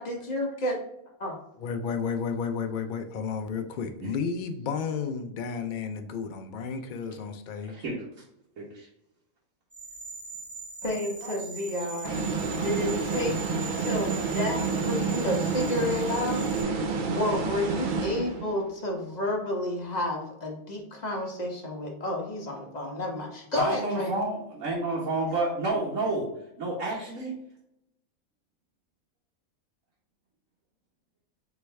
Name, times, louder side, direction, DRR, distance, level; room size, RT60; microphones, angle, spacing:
voice 1, 0.0-0.8 1.2-1.4 10.8-12.2 12.6-13.3 13.8-16.5 17.1-24.1, left 1 dB, 35° left, 0 dB, 0.9 m, -30 dB
voice 2, 1.6-7.8, left 6 dB, 80° left, 7 dB, 0.4 m, -32 dB
voice 3, 7.7-8.1 8.6-8.9 11.2-11.3 12.1-12.2 23.5-26.3 26.6-27.3, right 2 dB, 75° right, -6 dB, 1.5 m, -30 dB
sound 1, 9.7-16.6, right 4 dB, 10° right, 1.0 m, -41 dB
sound 2, 12.0-18.7, right 4 dB, 60° right, 0.5 m, -29 dB
4.6 x 3.0 x 3.2 m, 0.82 s
omnidirectional pair, 1.4 m